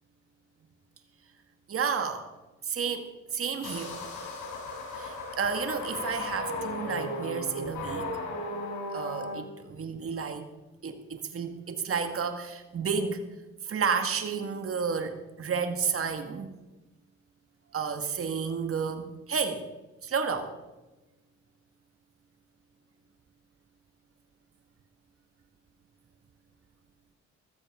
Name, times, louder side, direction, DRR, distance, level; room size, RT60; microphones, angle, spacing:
voice 1, 1.7-2.3 2.6-4.0 4.9-8.1 8.9-10.5 10.8-13.2 13.6-16.5 17.7-19.7 20.0-20.6, right 6 dB, 50° right, 7 dB, 1.7 m, -31 dB
sound 1, 3.6-9.3, left 1 dB, 85° left, 3.9 m, -36 dB
15.0 x 13.5 x 3.7 m, 1.1 s
cardioid pair, 90°, 30 cm